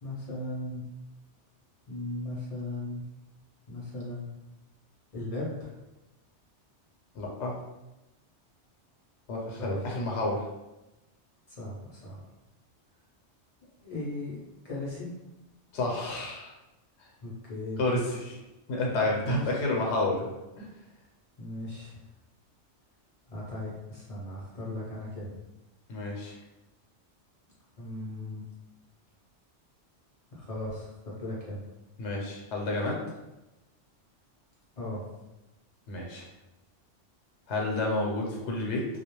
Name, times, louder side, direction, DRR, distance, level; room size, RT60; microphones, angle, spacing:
voice 1, 0.0-0.8 1.9-3.0 3.7-4.3 5.1-5.7 9.6-9.8 11.5-12.2 13.8-14.4 14.6-15.1 17.2-17.8 19.2-19.4 21.4-22.0 23.3-25.3 27.8-28.4 30.3-31.6 34.8-35.0, left 1 dB, 45° left, -6 dB, 0.5 m, -37 dB
voice 2, 7.1-7.5 9.3-10.5 15.7-16.5 17.0-17.1 17.8-18.4 18.7-20.3 20.6-20.7 25.9-26.3 32.0-33.0 35.9-36.3 37.5-38.9, left 2 dB, 80° left, -1 dB, 0.9 m, -30 dB
2.3 x 2.0 x 2.9 m, 0.99 s
omnidirectional pair, 1.2 m